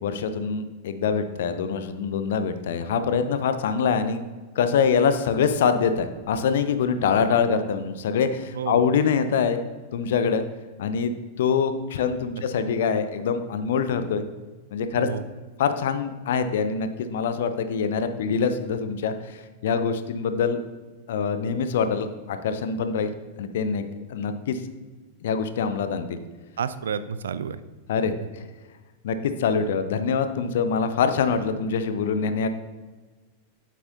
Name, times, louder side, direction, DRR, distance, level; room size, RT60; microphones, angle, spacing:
voice 1, 0.0-4.2 4.6-9.6 9.9-10.4 10.8-14.3 14.7-15.1 15.6-20.6 21.1-23.1 23.4-24.6 25.2-26.2 27.9-28.1 29.0-32.5, left 6 dB, 60° left, 10 dB, 0.6 m, -24 dB
voice 2, 14.9-15.2 26.6-27.6, right 7 dB, 65° right, 14 dB, 0.4 m, -30 dB
8.8 x 7.5 x 2.7 m, 1.3 s
figure-of-eight pair, 90°, 0 cm